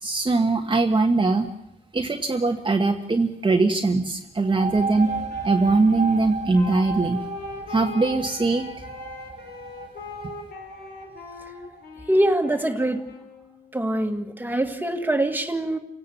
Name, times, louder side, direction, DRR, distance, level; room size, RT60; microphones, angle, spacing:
voice 1, 0.0-1.5 1.9-5.1 5.4-7.2 7.7-8.7, right 3 dB, 30° right, 3 dB, 1.4 m, -21 dB
sound 1, 4.4-11.8, right 4 dB, 45° right, 1.1 m, -34 dB
Wind instrument woodwind instrument, 4.7-13.7, left 5 dB, 85° left, 4.5 m, -42 dB
voice 2, 12.1-13.0 13.7-15.8, right 1 dB, 10° right, 5 dB, 2.0 m, -23 dB
29.0 x 17.5 x 7.0 m, 0.81 s
wide cardioid pair, 120°, 16 cm